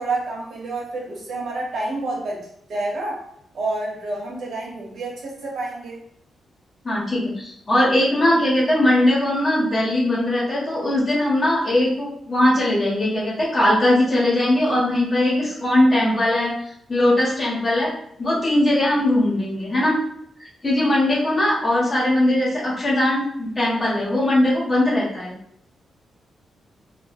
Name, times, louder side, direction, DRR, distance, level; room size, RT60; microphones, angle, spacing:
voice 1, 0.0-2.4 2.7-3.2 3.5-6.0, right 2 dB, 65° right, -2 dB, 1.0 m, -28 dB
voice 2, 6.8-16.5 16.9-17.9 18.2-20.0 20.4-25.3, left 1 dB, 25° left, -7 dB, 1.3 m, -20 dB
2.6 x 2.1 x 4.0 m, 0.70 s
wide cardioid pair, 140°, 0 cm